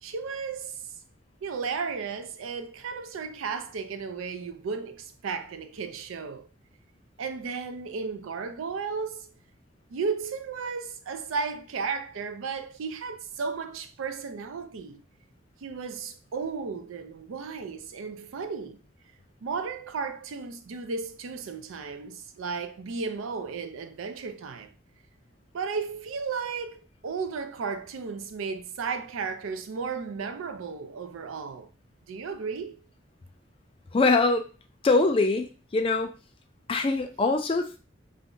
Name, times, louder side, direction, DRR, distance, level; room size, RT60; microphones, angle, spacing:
voice 1, 0.0-0.8 1.4-6.5 7.2-9.3 9.9-15.0 15.6-18.8 19.4-24.7 25.5-31.7 32.1-32.8, right 5 dB, 85° right, 0.4 m, -34 dB
voice 2, 33.9-34.5 34.8-36.1 36.7-37.8, left 3 dB, 25° left, 0.3 m, -23 dB
2.6 x 2.1 x 3.7 m
head